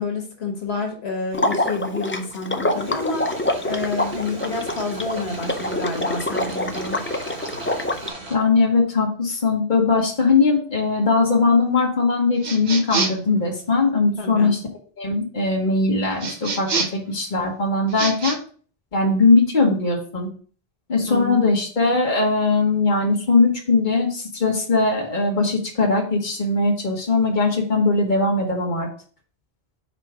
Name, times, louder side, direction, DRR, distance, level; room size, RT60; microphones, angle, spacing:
voice 1, 0.0-3.3 3.6-7.0 14.2-14.5 21.0-21.5, left 3 dB, 85° left, 2 dB, 1.6 m, -28 dB
Water / Liquid, 1.3-8.1, left 1 dB, 20° left, 0.4 m, -26 dB
sound 1, 2.7-8.4, right 2 dB, 80° right, 1.6 m, -38 dB
voice 2, 8.3-14.6 15.0-18.4 18.9-20.3 20.9-28.9, left 3 dB, 50° left, 0 dB, 1.5 m, -20 dB
sound 2, 12.4-13.3 16.2-17.1 17.9-18.4, right 4 dB, 50° right, 0.9 m, -26 dB
5.0 x 4.6 x 4.9 m, 0.43 s
omnidirectional pair, 1.1 m